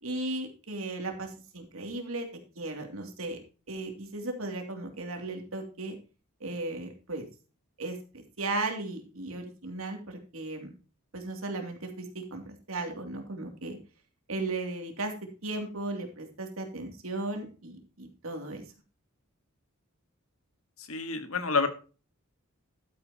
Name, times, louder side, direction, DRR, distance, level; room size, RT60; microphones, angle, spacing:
voice 1, 0.0-2.3 2.6-3.4 3.7-6.0 6.4-7.2 7.8-10.7 11.1-13.8 14.3-15.1 15.4-18.6, right 2 dB, 80° right, 4 dB, 2.7 m, -36 dB
voice 2, 20.8-21.7, left 4 dB, 80° left, 9 dB, 1.7 m, -28 dB
12.0 x 9.1 x 2.9 m, 0.34 s
head